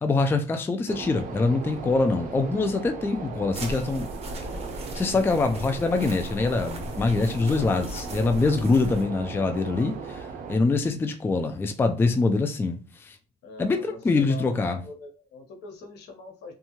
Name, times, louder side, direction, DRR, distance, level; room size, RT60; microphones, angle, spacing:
voice 1, 0.0-4.1 4.9-13.2 13.6-14.8, left 3 dB, 15° left, 0.3 m, -24 dB
sound 1, 0.9-10.6, right 5 dB, 55° right, 0.6 m, -38 dB
sound 2, 3.5-9.0, equal, 40° right, 1.0 m, -38 dB
voice 2, 7.5-7.9 13.4-14.6 14.8-16.5, left 4 dB, 80° left, 0.9 m, -44 dB
2.7 x 2.3 x 2.9 m
cardioid pair, 110°, 17 cm